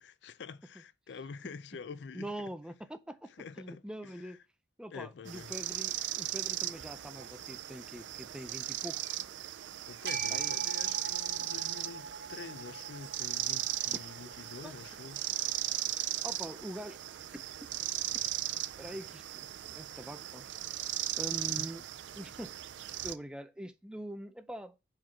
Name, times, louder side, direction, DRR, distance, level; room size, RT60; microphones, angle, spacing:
voice 1, 0.0-2.5 3.3-4.4 4.9-5.5 9.9-15.2 21.4-21.7, left 5 dB, 70° left, 0.4 m, -47 dB
voice 2, 2.1-3.3 3.6-4.4 4.8-9.3 10.3-10.5 14.6-14.7 16.2-17.0 17.3-17.4 18.8-20.4 21.2-21.8 22.1-22.7 23.0-24.7, right 1 dB, 5° right, 0.5 m, -44 dB
sound 1, 5.3-23.2, right 13 dB, 80° right, 0.4 m, -37 dB
sound 2, 10.1-16.3, right 4 dB, 60° right, 1.3 m, -44 dB
4.9 x 4.6 x 5.6 m
head